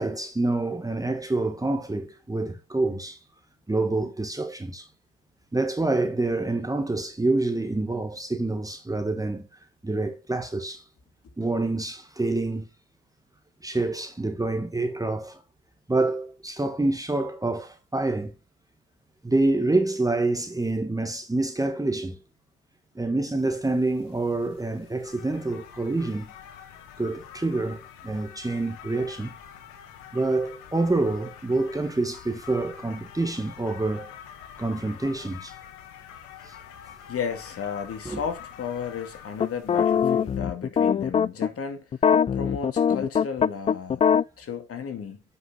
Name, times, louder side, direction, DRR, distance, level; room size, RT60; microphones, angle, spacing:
voice 1, 0.0-3.2 3.7-4.9 5.5-9.5 9.8-10.8 11.4-12.7 13.6-15.4 15.9-18.3 19.2-22.2 22.9-26.3 27.0-29.3 30.1-34.1 34.6-35.5 36.4-36.5 38.0-38.2, right 2 dB, 10° right, 1.5 m, -27 dB
sound 1, 23.4-40.4, left 9 dB, 70° left, 1.3 m, -46 dB
voice 2, 37.1-41.9 42.3-44.0 44.4-45.2, left 6 dB, 45° left, 2.3 m, -34 dB
sound 2, 39.4-41.5 41.9-44.2, left 7 dB, 20° left, 0.3 m, -22 dB
9.2 x 5.9 x 3.8 m
hypercardioid pair, 55°, 32 cm